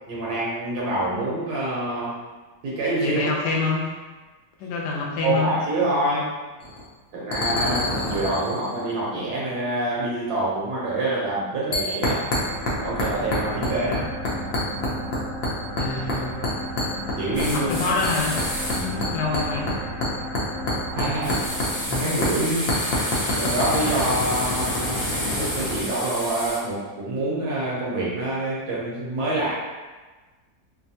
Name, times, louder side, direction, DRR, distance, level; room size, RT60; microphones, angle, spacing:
voice 1, 0.1-2.2 2.6-3.3 5.2-6.3 7.1-12.3 12.8-14.1 17.2-17.7 18.7-19.2 20.9-21.4 21.9-22.7 23.2-29.5, right 2 dB, 75° right, -6 dB, 1.2 m, -26 dB
voice 2, 3.0-3.8 4.6-5.5 15.7-16.3 17.5-18.4 19.1-19.7, left 3 dB, 85° left, -1 dB, 1.2 m, -26 dB
sound 1, 6.6-6.8 7.3-8.9 11.7-12.7 13.0-14.0 14.2-15.2 15.4-16.2 16.4-17.7 18.0-22.0 22.2-22.3 22.7-25.8, left 2 dB, 65° left, 1.0 m, -26 dB
sound 2, 12.2-22.7, equal, 15° left, 0.8 m, -34 dB
sound 3, 17.3-18.9 21.2-26.6, equal, 50° left, 1.3 m, -30 dB
3.1 x 2.2 x 2.7 m, 1.3 s
omnidirectional pair, 1.7 m